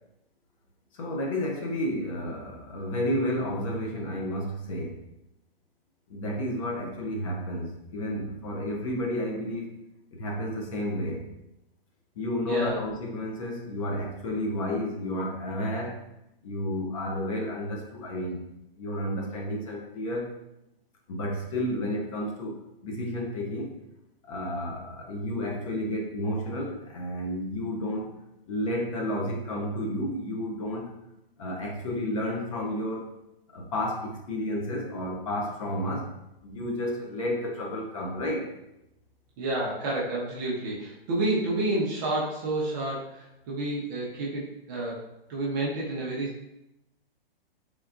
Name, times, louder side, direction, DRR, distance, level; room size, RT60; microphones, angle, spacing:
voice 1, 0.9-5.0 6.1-9.8 10.1-11.3 12.2-16.0 16.4-18.4 18.8-20.3 21.1-22.6 22.8-23.7 24.2-28.1 28.5-30.9 31.4-33.2 33.5-36.1 36.4-38.5, left 1 dB, 35° left, 0 dB, 0.6 m, -31 dB
voice 2, 12.4-12.8 39.4-45.0 45.3-46.5, right 2 dB, 20° right, -5 dB, 0.5 m, -30 dB
3.6 x 3.5 x 2.4 m, 0.86 s
hypercardioid pair, 155°, 30 cm